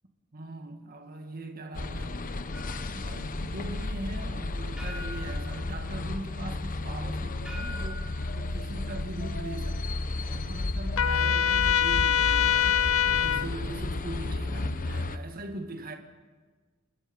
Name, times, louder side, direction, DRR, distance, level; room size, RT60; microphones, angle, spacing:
voice 1, 0.3-2.3 2.9-8.1 8.3-12.7 13.2-15.9, right 1 dB, 45° right, 2.0 m, -41 dB
sound 1, 1.7-15.2, left 2 dB, 40° left, 0.9 m, -33 dB
sound 2, 2.5-13.9, left 3 dB, 5° right, 4.8 m, -46 dB
Trumpet, 11.0-13.5, left 9 dB, 75° left, 0.7 m, -24 dB
28.0 x 20.0 x 5.4 m
head